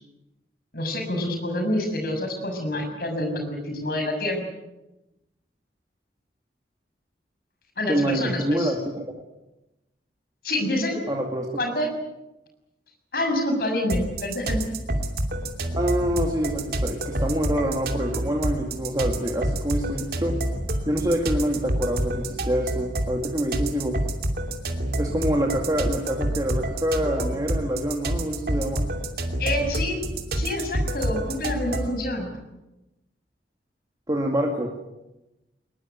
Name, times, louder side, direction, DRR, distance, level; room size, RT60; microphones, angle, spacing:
voice 1, 0.7-4.4 7.8-8.7 10.4-11.0 11.6-11.9 13.1-14.7 29.4-30.0 30.3-32.3, left 1 dB, 55° left, 4 dB, 6.6 m, -27 dB
voice 2, 7.9-9.1 11.1-11.5 15.8-20.4 20.9-24.0 25.0-28.9 34.1-34.8, equal, 20° right, 1 dB, 2.2 m, -26 dB
sound 1, 13.9-32.0, right 1 dB, 55° right, 2.8 m, -28 dB
22.0 x 21.5 x 9.2 m, 0.96 s
head